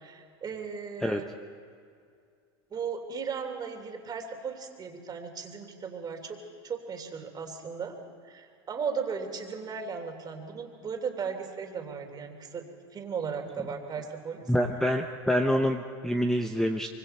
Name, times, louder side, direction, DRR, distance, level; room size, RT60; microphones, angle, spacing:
voice 1, 0.0-1.3 2.7-8.0 8.2-12.7 12.9-14.5, right 6 dB, 30° right, 4 dB, 3.1 m, -36 dB
voice 2, 14.5-16.9, equal, 5° left, 6 dB, 0.9 m, -26 dB
24.5 x 24.0 x 4.4 m, 2.3 s
hypercardioid pair, 105°, 14 cm